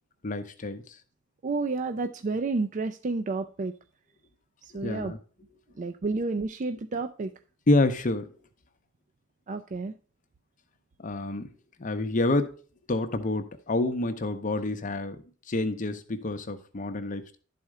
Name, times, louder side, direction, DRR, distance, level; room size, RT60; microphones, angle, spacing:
voice 1, 0.2-0.8 4.8-5.2 7.7-8.3 11.0-11.5 11.8-12.5 12.9-17.4, left 2 dB, 40° left, 0.7 m, -28 dB
voice 2, 1.4-3.7 4.7-5.1 5.8-7.3 9.5-9.9, right 3 dB, 40° right, 0.4 m, -30 dB
11.5 x 4.2 x 4.8 m
head